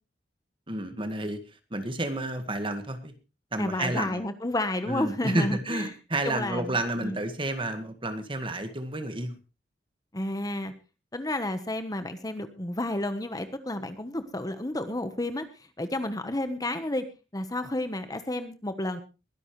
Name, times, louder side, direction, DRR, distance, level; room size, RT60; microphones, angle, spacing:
voice 1, 0.7-1.4 1.7-3.1 3.5-4.2 4.9-9.3, right 1 dB, 30° right, 9 dB, 1.8 m, -30 dB
voice 2, 3.6-5.9 6.2-7.2 10.1-10.7 11.1-15.5 15.8-17.0 17.3-19.0, left 1 dB, 20° left, 10 dB, 1.2 m, -31 dB
22.0 x 11.0 x 3.2 m, 0.30 s
head